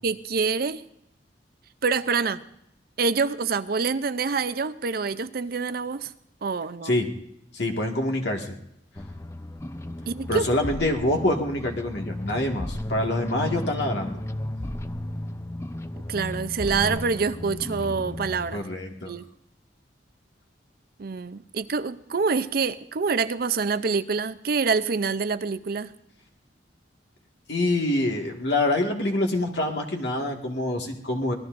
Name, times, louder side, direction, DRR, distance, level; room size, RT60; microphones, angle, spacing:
voice 1, 0.0-0.8 1.8-2.4 3.0-6.1 6.4-7.0 10.1-10.4 16.1-18.6 19.1-19.2 21.0-25.9, right 4 dB, 55° right, 14 dB, 0.5 m, -26 dB
voice 2, 7.5-8.6 10.3-14.2 18.5-19.1 27.5-31.3, left 1 dB, 70° left, 2 dB, 1.9 m, -26 dB
sound 1, 9.0-18.6, left 1 dB, 15° left, 0.5 m, -34 dB
25.5 x 19.0 x 2.6 m, 0.79 s
head